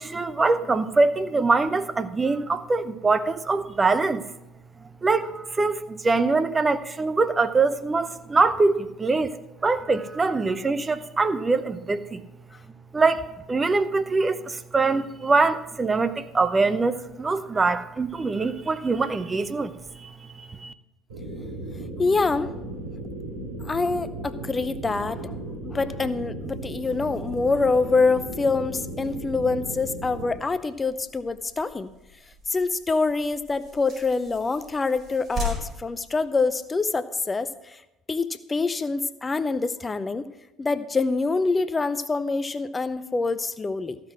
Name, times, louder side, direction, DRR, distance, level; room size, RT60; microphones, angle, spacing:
voice 1, 0.0-4.2 5.0-9.3 9.6-12.2 12.9-19.7 20.0-20.1 20.5-20.7, right 3 dB, 25° right, 0.7 m, -23 dB
sound 1, 21.1-30.3, right 1 dB, 80° right, 2.7 m, -36 dB
voice 2, 22.0-22.5 23.6-25.4 25.6-31.9 32.5-37.8 38.1-40.2 40.6-44.0, left 3 dB, 25° left, 0.5 m, -25 dB
sound 2, 26.8-36.9, left 1 dB, 40° right, 4.5 m, -41 dB
14.5 x 6.0 x 6.1 m
figure-of-eight pair, 60°, 0 cm